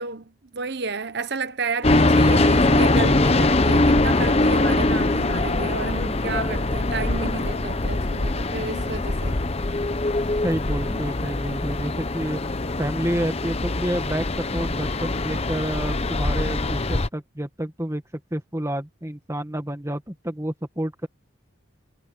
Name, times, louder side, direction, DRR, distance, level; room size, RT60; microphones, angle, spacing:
voice 1, 0.0-9.4, right 4 dB, 50° right, 1.1 m, -31 dB
sound 1, 1.8-17.1, left 2 dB, 30° left, 0.8 m, -22 dB
voice 2, 10.4-12.4 12.8-18.0 18.3-21.1, right 1 dB, 15° right, 1.9 m, -29 dB
head